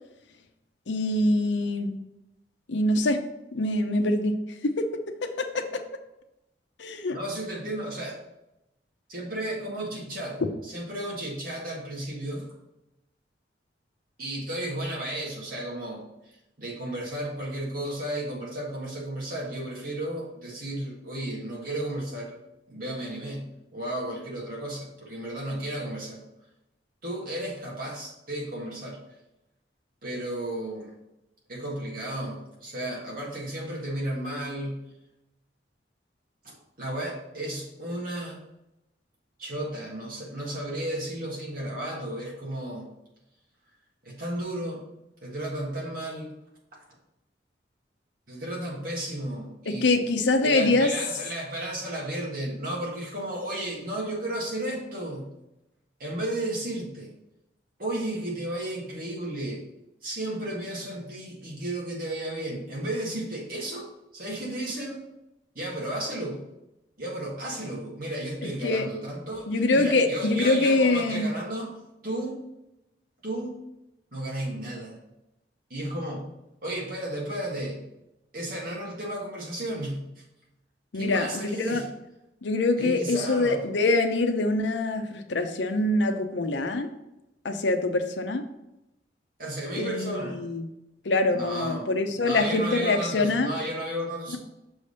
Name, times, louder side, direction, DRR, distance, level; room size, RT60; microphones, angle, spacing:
voice 1, 0.9-2.0 2.7-3.2 3.5-4.4 4.6-4.9 5.4-5.8 6.8-7.2 49.7-50.9 68.4-68.8 69.5-71.3 80.9-81.8 82.4-86.9 87.4-88.4 89.8-90.6 91.0-93.5, left 2 dB, 80° left, 6 dB, 0.7 m, -24 dB
voice 2, 7.1-8.2 9.1-12.5 14.2-22.4 22.7-26.2 27.0-29.0 30.0-30.9 31.5-34.8 36.4-38.4 39.4-42.9 44.0-44.9 45.2-46.3 48.3-49.9 50.4-55.3 56.0-57.1 57.8-59.6 60.0-63.9 64.1-65.1 65.6-66.5 67.0-71.7 72.0-72.5 73.2-73.6 74.1-75.0 75.7-76.3 76.6-77.8 78.3-80.2 80.9-81.9 82.8-83.6 89.4-90.4 91.3-91.9 92.2-94.4, right 1 dB, 50° right, -3 dB, 1.6 m, -33 dB
6.3 x 3.4 x 5.5 m, 0.90 s
head